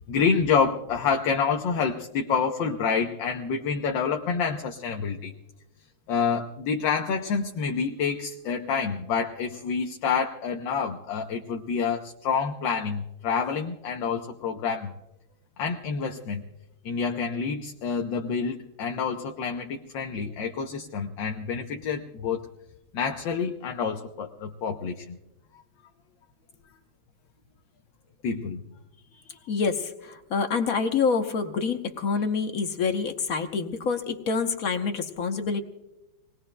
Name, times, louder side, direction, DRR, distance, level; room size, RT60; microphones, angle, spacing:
voice 1, 0.1-5.3 6.1-14.9 15.6-16.4 16.8-22.5 22.9-25.2 28.2-28.6, left 6 dB, 70° left, 3 dB, 1.5 m, -28 dB
voice 2, 29.1-35.6, left 5 dB, 55° left, 6 dB, 1.1 m, -27 dB
27.5 x 20.0 x 2.2 m, 0.97 s
omnidirectional pair, 2.2 m